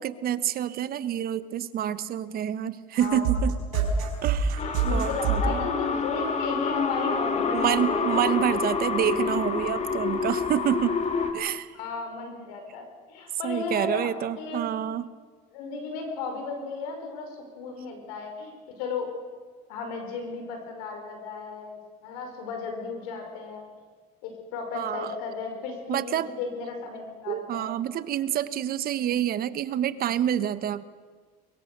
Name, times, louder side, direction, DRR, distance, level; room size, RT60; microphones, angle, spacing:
voice 1, 0.0-3.6 4.2-5.7 7.5-11.0 11.3-11.7 13.4-15.0 24.7-25.2 25.9-26.3 27.3-30.8, right 10 dB, 55° right, 14 dB, 1.2 m, -28 dB
sound 1, 3.0-5.5, right 5 dB, 90° right, 5.5 m, -25 dB
voice 2, 3.7-4.1 4.9-8.1 11.7-14.7 15.5-18.5 18.8-19.1 19.7-23.6 24.2-27.7, left 4 dB, 90° left, 4 dB, 5.2 m, -34 dB
sound 2, 4.6-11.3, left 5 dB, 40° left, 2.5 m, -28 dB
22.5 x 22.0 x 6.8 m, 1.5 s
supercardioid pair, 95°, 18 cm